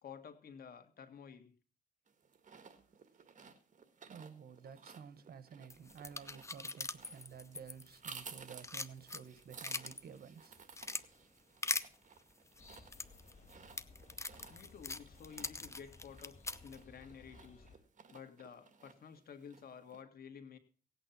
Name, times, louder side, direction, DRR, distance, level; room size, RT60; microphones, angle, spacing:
voice 1, 0.0-1.5 14.5-17.7 18.1-20.6, left 7 dB, 75° left, 2.0 m, -52 dB
sound 1, 2.1-20.0, right 5 dB, 55° right, 1.6 m, -57 dB
voice 2, 4.1-10.6 13.2-13.4, right 7 dB, 75° right, 1.1 m, -52 dB
sound 2, 5.7-8.2 8.5-10.0 10.4-11.0 11.6-11.9 12.6-16.8, left 3 dB, 20° left, 0.7 m, -41 dB
sound 3, 12.6-17.8, left 3 dB, 50° left, 4.6 m, -59 dB
17.5 x 8.8 x 5.9 m
cardioid pair, 105°, 16 cm